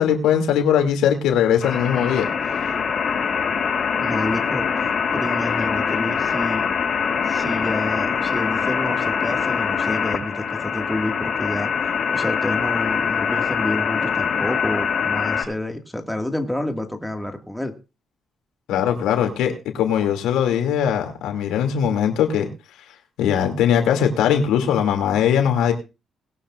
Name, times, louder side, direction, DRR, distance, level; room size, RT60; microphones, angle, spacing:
voice 1, 0.0-2.3 18.7-22.5 23.2-25.7, left 8 dB, 90° left, 4 dB, 2.6 m, -20 dB
sound 1, 1.6-15.4, left 6 dB, 50° left, 6.7 m, -23 dB
voice 2, 4.0-4.7 5.1-6.7 7.3-11.7 12.1-17.7, left 1 dB, 5° left, 4 dB, 2.0 m, -29 dB
20.0 x 12.0 x 2.5 m, 0.30 s
cardioid pair, 90°, 0 cm